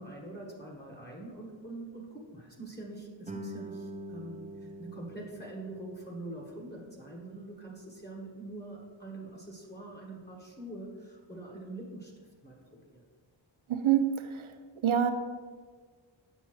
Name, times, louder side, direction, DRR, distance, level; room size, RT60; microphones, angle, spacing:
voice 1, 0.0-13.0, right 2 dB, 20° left, -2 dB, 1.3 m, -44 dB
Guitar, 3.3-8.6, right 1 dB, 15° right, 0.7 m, -46 dB
voice 2, 13.7-14.5 14.8-15.1, right 9 dB, 85° right, 9 dB, 0.7 m, -26 dB
7.9 x 5.5 x 3.1 m, 1.5 s
cardioid pair, 50°, 48 cm